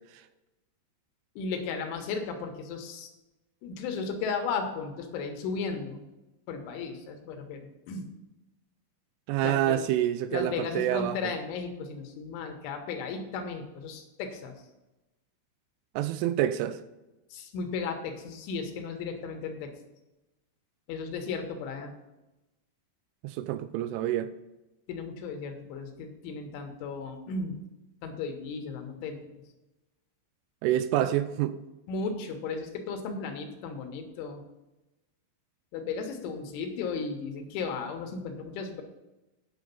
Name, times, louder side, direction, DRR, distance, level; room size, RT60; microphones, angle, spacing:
voice 1, 1.4-3.1 3.6-6.0 6.5-8.1 9.4-9.8 10.3-14.5 17.3-19.7 20.9-21.9 24.9-27.6 28.0-29.4 31.9-34.4 35.7-38.8, left 5 dB, 75° left, 3.3 m, -35 dB
voice 2, 9.3-11.3 16.0-16.8 23.2-24.3 30.6-31.5, right 12 dB, 85° right, 2.9 m, -27 dB
10.5 x 6.3 x 5.3 m
omnidirectional pair, 5.8 m